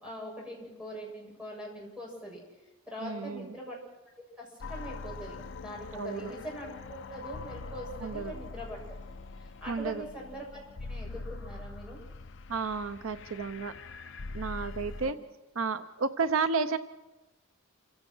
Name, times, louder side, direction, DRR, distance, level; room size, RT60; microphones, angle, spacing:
voice 1, 0.0-2.4 2.9-3.7 4.4-5.4 5.6-9.0 9.4-10.6 10.9-12.0 15.0-15.1, equal, 5° right, -3 dB, 7.9 m, -42 dB
voice 2, 3.0-3.6 5.9-6.3 8.0-8.3 9.7-10.0 12.5-13.7 14.3-15.2 15.5-16.8, right 4 dB, 75° right, 11 dB, 0.8 m, -32 dB
sound 1, 4.6-15.1, left 3 dB, 60° left, 0.7 m, -43 dB
28.5 x 16.0 x 6.2 m, 1.1 s
head